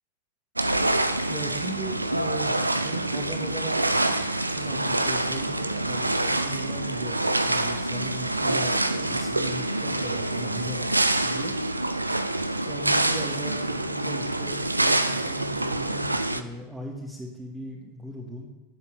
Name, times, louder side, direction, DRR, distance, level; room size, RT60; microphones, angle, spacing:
sound 1, 0.6-16.4, right 2 dB, 85° right, 0.7 m, -26 dB
voice 1, 1.3-11.5 12.7-18.5, right 1 dB, 10° right, -2 dB, 2.2 m, -38 dB
16.0 x 8.3 x 6.2 m, 1.2 s
figure-of-eight pair, 90°, 0 cm